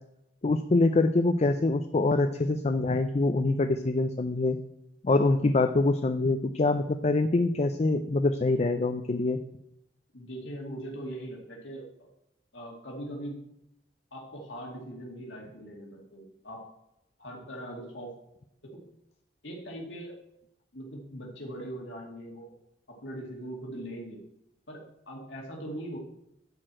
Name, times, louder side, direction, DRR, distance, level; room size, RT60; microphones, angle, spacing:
voice 1, 0.4-4.6 5.0-9.4, left 2 dB, 35° left, 8 dB, 0.5 m, -25 dB
voice 2, 10.1-12.1 12.5-13.4 14.1-16.6 17.2-18.2 18.7-18.8 19.4-20.2 20.7-22.5 22.9-24.2 24.7-26.0, right 1 dB, 85° left, -1 dB, 2.2 m, -40 dB
10.5 x 4.5 x 7.5 m, 0.81 s
head